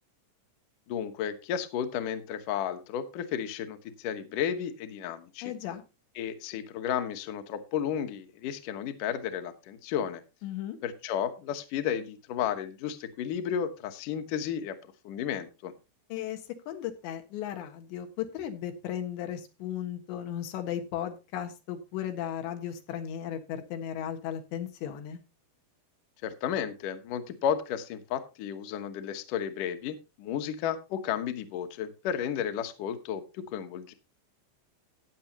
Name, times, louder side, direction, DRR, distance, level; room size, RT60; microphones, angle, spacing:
voice 1, 0.9-5.5 6.2-10.2 10.8-14.8 15.0-15.7 26.2-33.9, left 9 dB, 65° left, 8 dB, 2.3 m, -33 dB
voice 2, 5.4-5.8 10.4-10.8 16.1-16.4 16.7-25.2, left 10 dB, 85° left, 6 dB, 3.8 m, -36 dB
15.0 x 9.7 x 2.9 m, 0.28 s
omnidirectional pair, 4.9 m